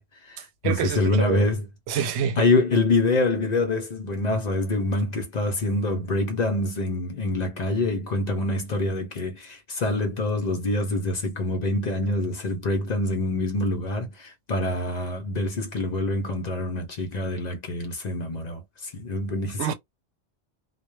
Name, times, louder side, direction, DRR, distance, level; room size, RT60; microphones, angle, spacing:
voice 1, 0.0-1.7 2.4-19.7, left 2 dB, 50° left, 0.6 m, -26 dB
voice 2, 0.6-1.5 1.9-2.5 19.6-19.7, right 8 dB, 90° right, 0.9 m, -27 dB
2.2 x 2.1 x 3.0 m
omnidirectional pair, 1.1 m